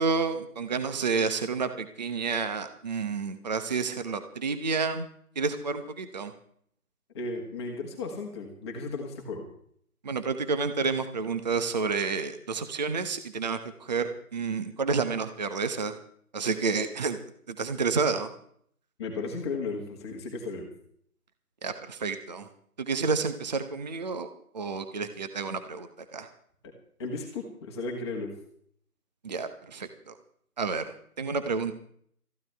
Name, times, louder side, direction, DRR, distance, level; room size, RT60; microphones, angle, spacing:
voice 1, 0.0-5.1 5.4-6.3 10.0-16.0 16.3-17.2 17.5-18.3 21.6-22.5 22.8-24.3 24.5-26.3 29.2-30.2 30.6-31.7, right 4 dB, 30° right, 10 dB, 0.9 m, -30 dB
voice 2, 7.1-9.5 19.0-20.7 27.0-28.3, left 3 dB, 15° left, 1 dB, 1.7 m, -35 dB
20.5 x 14.5 x 3.4 m, 0.63 s
figure-of-eight pair, 155°, 45 cm